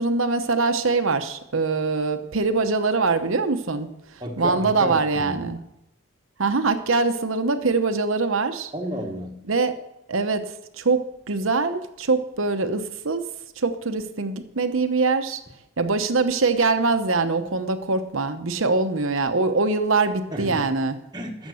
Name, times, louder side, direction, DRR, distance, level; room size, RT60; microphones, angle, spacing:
voice 1, 0.0-3.9 4.4-5.6 6.4-8.7 9.5-9.8 10.1-13.2 13.6-15.4 15.8-21.0, right 3 dB, 70° right, 9 dB, 0.9 m, -23 dB
voice 2, 4.2-5.5 8.7-9.5 20.3-20.6 21.1-21.5, equal, 20° right, 1 dB, 1.2 m, -32 dB
12.5 x 7.3 x 6.4 m, 0.87 s
head